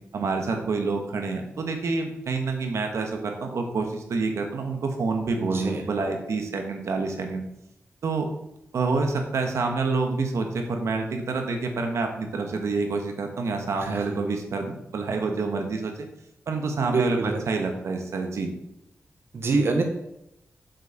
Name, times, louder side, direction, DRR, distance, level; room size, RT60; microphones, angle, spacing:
voice 1, 0.1-7.4 8.0-8.3 8.7-16.1 16.5-18.5, right 4 dB, 80° right, 3 dB, 1.5 m, -27 dB
voice 2, 5.4-5.8 13.8-14.1 16.8-17.4 19.3-19.8, right 3 dB, 55° right, 3 dB, 1.4 m, -25 dB
7.9 x 6.7 x 6.7 m, 0.82 s
wide cardioid pair, 125°, 5 cm